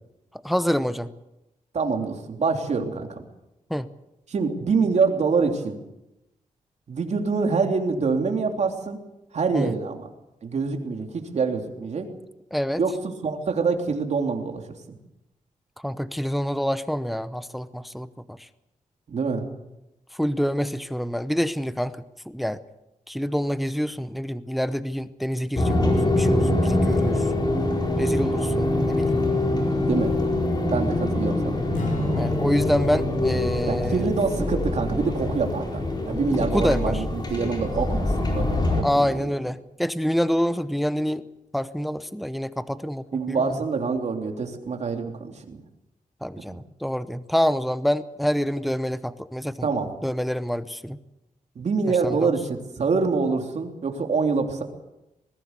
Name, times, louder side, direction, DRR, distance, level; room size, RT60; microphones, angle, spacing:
voice 1, 0.4-1.1 3.7-3.9 9.5-9.7 12.5-12.8 15.8-18.5 20.1-22.0 22.3-22.6 23.1-27.3 28.0-29.2 32.1-34.1 36.4-37.0 38.8-41.2 41.5-43.6 46.2-49.7 50.0-51.0 52.0-52.3, equal, ahead, 14 dB, 0.7 m, -26 dB
voice 2, 1.7-3.2 4.3-5.8 6.9-9.0 9.3-10.1 10.4-12.1 12.8-12.9 13.2-14.8 19.1-19.6 29.8-30.2 30.7-31.6 33.7-39.2 43.1-45.6 46.5-46.6 49.6-49.9 51.5-54.6, right 4 dB, 55° right, 3 dB, 3.2 m, -25 dB
sound 1, 25.6-38.8, left 2 dB, 30° left, 4.4 m, -24 dB
Strum, 31.7-38.1, left 2 dB, 70° left, 3.5 m, -36 dB
21.0 x 16.5 x 8.2 m, 0.92 s
wide cardioid pair, 135°, 14 cm